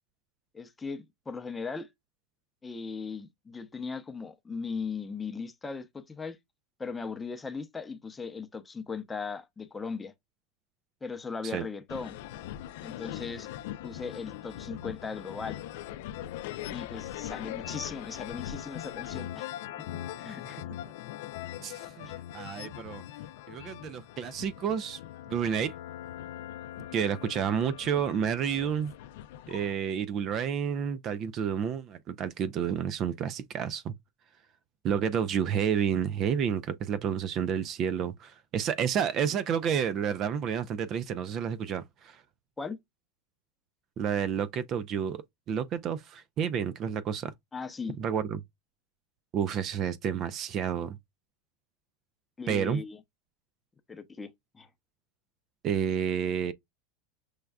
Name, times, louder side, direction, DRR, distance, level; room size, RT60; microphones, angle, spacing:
voice 1, 0.5-1.9 2.6-6.4 6.8-10.1 11.0-12.2 12.8-13.5 13.8-15.6 16.7-19.5 20.2-20.6 42.6-42.8 47.5-48.0 52.4-53.0 53.9-54.3 54.5-54.7, left 5 dB, 15° left, 0.6 m, -38 dB
sound 1, 11.9-29.7, left 12 dB, 70° left, 0.4 m, -41 dB
voice 2, 21.6-22.1 22.3-23.0 23.5-25.0 25.3-25.7 26.9-28.9 29.5-33.9 34.8-42.2 44.0-47.3 48.0-48.4 49.3-51.0 52.5-52.8 55.6-56.5, right 8 dB, 40° right, 0.3 m, -30 dB
6.3 x 2.3 x 2.3 m
supercardioid pair, 125°, 0 cm